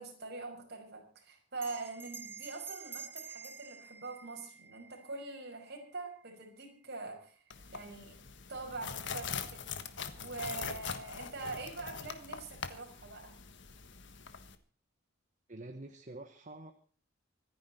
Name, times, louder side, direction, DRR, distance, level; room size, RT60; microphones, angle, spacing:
voice 1, 0.0-7.4 7.7-8.2 8.5-9.7 10.2-13.4, right 3 dB, 55° right, 2 dB, 5.7 m, -44 dB
Bell, 1.6-6.4, right 6 dB, 10° right, 1.2 m, -49 dB
sound 1, 7.5-14.6, left 6 dB, 60° left, 1.4 m, -43 dB
voice 2, 15.5-16.7, right 2 dB, 40° right, 7 dB, 1.3 m, -47 dB
25.5 x 10.0 x 4.3 m, 0.41 s
head